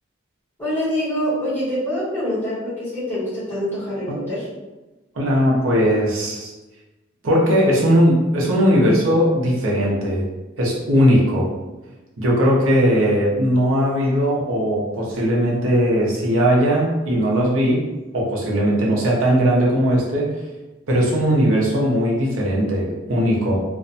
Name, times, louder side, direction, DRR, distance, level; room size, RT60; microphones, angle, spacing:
voice 1, 0.6-4.5, equal, 10° left, -11 dB, 1.0 m, -25 dB
voice 2, 5.1-6.5 7.2-10.3 10.6-11.5 12.2-17.8 18.1-20.3 20.9-23.6, equal, 90° right, -4 dB, 0.7 m, -18 dB
2.5 x 2.1 x 2.6 m, 1.1 s
head